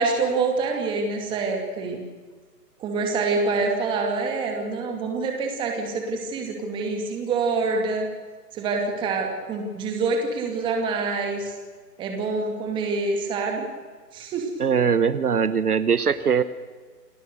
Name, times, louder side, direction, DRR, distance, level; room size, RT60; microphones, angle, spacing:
voice 1, 0.0-2.1 2.8-8.1 8.5-11.5 12.0-13.7 14.1-14.5, right 3 dB, 10° right, 2 dB, 2.5 m, -26 dB
voice 2, 14.6-16.4, right 6 dB, 65° right, 13 dB, 1.2 m, -21 dB
28.5 x 17.5 x 6.9 m, 1.5 s
figure-of-eight pair, 150°, 49 cm